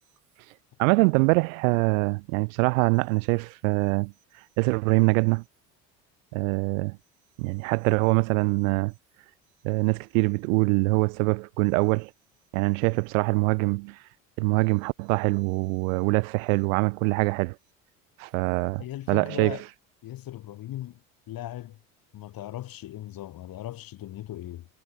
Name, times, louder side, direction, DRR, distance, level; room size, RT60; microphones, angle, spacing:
voice 1, 0.8-4.1 4.6-5.4 6.3-7.0 7.4-8.9 9.6-12.1 12.5-14.0 14.4-17.6 18.2-19.6, right 29 dB, 80° right, 0.7 m, -24 dB
voice 2, 18.8-19.6 20.0-21.0 21.3-21.8 22.1-24.7, left 14 dB, 55° left, 6.5 m, -38 dB
hypercardioid pair, 75°, 40 cm